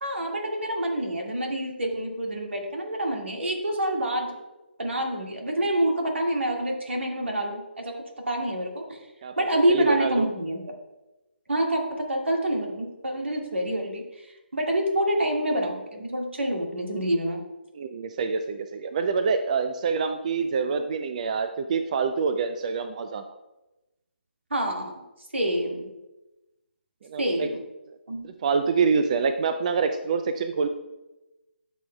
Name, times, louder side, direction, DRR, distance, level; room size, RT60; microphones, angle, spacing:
voice 1, 0.0-4.4 4.8-8.0 8.3-9.0 9.4-10.6 11.5-14.0 14.5-17.4 24.5-24.9 25.3-25.9 27.2-27.5 28.1-28.3, right 1 dB, 85° right, 1 dB, 2.0 m, -27 dB
voice 2, 9.7-10.3 17.7-23.2 27.0-27.5 28.2-30.7, right 5 dB, 40° right, 8 dB, 0.4 m, -26 dB
12.0 x 6.2 x 2.3 m, 1.0 s
figure-of-eight pair, 155°, 6 cm